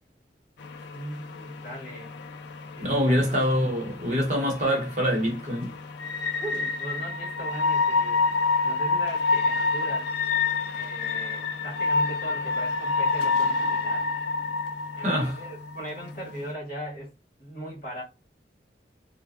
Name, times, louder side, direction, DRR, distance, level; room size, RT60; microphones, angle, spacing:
sound 1, 0.6-16.5, left 4 dB, 80° left, 0.4 m, -28 dB
voice 1, 0.9-2.1 2.7-3.4 6.4-8.2 8.6-10.1 10.7-14.1 15.0-17.1 17.4-18.0, right 1 dB, 50° left, 1.4 m, -39 dB
voice 2, 2.8-5.7 15.0-15.4, equal, 40° right, 0.9 m, -25 dB
2.5 x 2.1 x 2.3 m
head